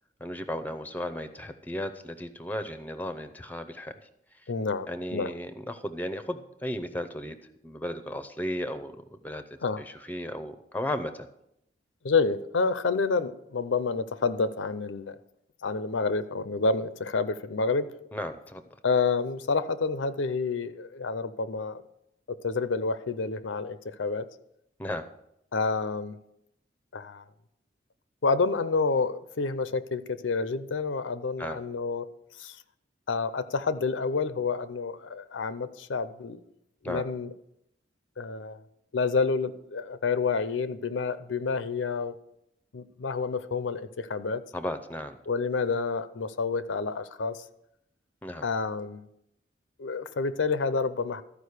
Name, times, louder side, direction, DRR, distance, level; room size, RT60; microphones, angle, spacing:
voice 1, 0.2-4.0 4.9-9.4 9.8-11.3 18.1-18.6 24.8-25.1 31.4-31.6 36.8-37.1 44.5-45.2 48.2-48.4, left 1 dB, 10° left, 10 dB, 0.6 m, -35 dB
voice 2, 4.5-5.3 9.6-9.8 12.0-15.1 15.6-17.9 18.8-21.8 22.3-24.3 25.5-26.2 26.9-27.2 28.2-32.1 32.4-32.6 33.1-36.4 36.8-37.3 38.2-38.6 38.9-42.1 42.7-44.4 45.3-47.4 48.4-49.0 49.8-51.2, left 4 dB, 85° left, 13 dB, 0.6 m, -29 dB
13.5 x 5.0 x 6.6 m, 0.80 s
head